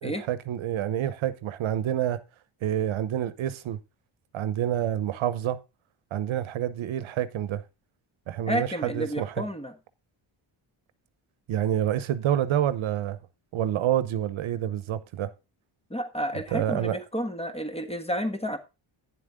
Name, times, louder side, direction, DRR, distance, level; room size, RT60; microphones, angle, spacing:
voice 1, 0.0-2.2 2.6-3.8 4.3-5.6 6.1-7.6 8.3-9.4 11.5-13.2 13.5-15.3 16.5-17.0, right 11 dB, 80° right, 1.0 m, -28 dB
voice 2, 8.5-9.7 15.9-18.6, equal, 10° left, 1.4 m, -31 dB
9.9 x 7.6 x 3.6 m
cardioid pair, 115°, 48 cm